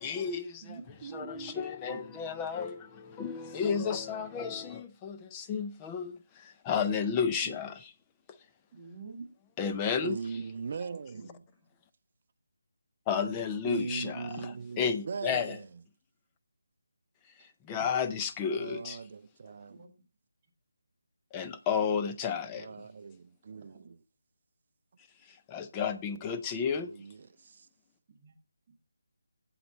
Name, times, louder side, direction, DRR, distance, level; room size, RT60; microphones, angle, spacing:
voice 1, 0.0-7.9 8.3-8.4 9.6-10.4 13.1-15.6 17.3-19.0 21.3-22.8 25.2-27.0, left 6 dB, 10° left, 0.5 m, -33 dB
voice 2, 0.6-2.0 7.4-7.5 8.7-9.3 11.1-11.3 19.7-19.9 23.6-23.9 28.1-28.3, right 5 dB, 20° right, 1.6 m, -47 dB
voice 3, 10.0-11.3 13.6-15.6 18.5-19.8 22.5-24.0 26.7-27.7, right 5 dB, 35° right, 0.5 m, -40 dB
7.9 x 7.8 x 4.1 m
figure-of-eight pair, 170°, 0 cm